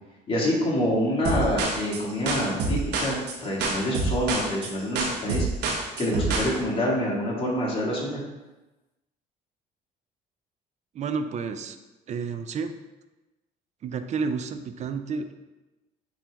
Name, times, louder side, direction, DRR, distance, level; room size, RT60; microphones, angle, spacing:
voice 1, 0.3-5.5 6.0-8.2, equal, 35° left, -4 dB, 2.1 m, -26 dB
sound 1, 1.2-6.5, right 3 dB, 85° right, 1.0 m, -27 dB
voice 2, 10.9-11.8 12.1-12.7 13.8-15.3, right 5 dB, 45° right, 8 dB, 0.5 m, -30 dB
8.6 x 3.3 x 3.5 m, 1.1 s
cardioid pair, 110°, 17 cm